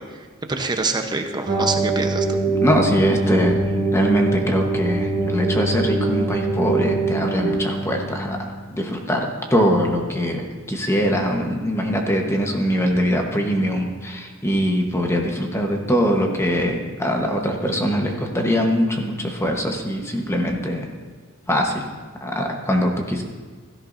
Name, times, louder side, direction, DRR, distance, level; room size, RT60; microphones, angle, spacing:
voice 1, 0.0-2.4, right 3 dB, 20° right, 5 dB, 0.9 m, -26 dB
sound 1, 1.5-8.5, right 2 dB, 40° right, 1.6 m, -23 dB
voice 2, 2.5-3.7 3.9-20.9 21.5-21.8 22.2-23.2, equal, 15° left, 2 dB, 1.2 m, -22 dB
16.0 x 13.5 x 2.7 m, 1.5 s
head